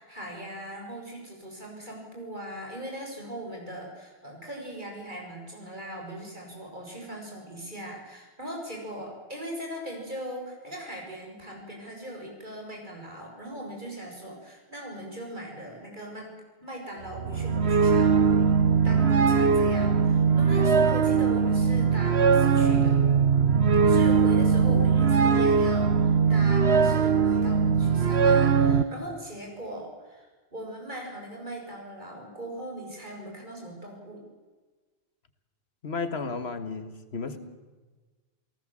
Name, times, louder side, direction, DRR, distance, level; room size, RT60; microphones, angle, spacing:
voice 1, 0.0-18.2 18.8-23.0 23.8-34.2 37.3-37.4, right 1 dB, 50° right, 7.0 m, -40 dB
sound 1, 17.1-28.8, right 5 dB, 85° right, 1.4 m, -21 dB
voice 2, 24.7-25.1 35.8-37.4, left 4 dB, 80° left, 1.9 m, -33 dB
28.5 x 18.5 x 7.6 m
omnidirectional pair, 1.1 m